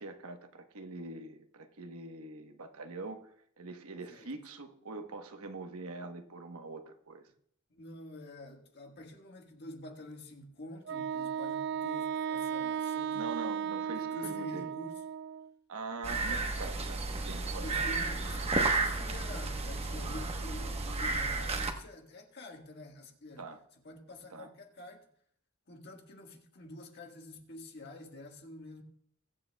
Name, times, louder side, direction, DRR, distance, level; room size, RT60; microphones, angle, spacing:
voice 1, 0.0-3.3 3.6-7.3 13.1-14.7 15.7-17.9 23.4-23.6 24.3-24.5, right 3 dB, 75° right, 1.1 m, -43 dB
voice 2, 7.7-13.2 13.9-14.9 16.3-16.5 17.6-23.4 23.8-25.0 25.7-28.8, left 2 dB, 50° left, 1.6 m, -47 dB
Wind instrument woodwind instrument, 10.9-15.5, right 8 dB, 50° right, 0.3 m, -35 dB
sound 1, 16.0-21.7, right 3 dB, 30° right, 1.1 m, -32 dB
22.0 x 8.7 x 2.3 m
head